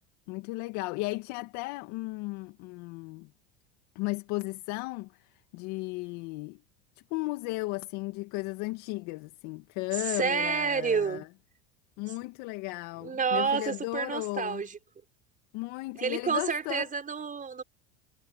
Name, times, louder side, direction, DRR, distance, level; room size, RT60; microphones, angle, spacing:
voice 1, 0.3-3.3 4.0-6.6 7.0-11.3 12.0-14.6 15.5-16.9, left 23 dB, 65° left, 2.3 m, -35 dB
voice 2, 10.1-11.3 13.0-14.8 16.0-17.6, right 6 dB, 25° right, 4.7 m, -29 dB
supercardioid pair, 95°, 30 cm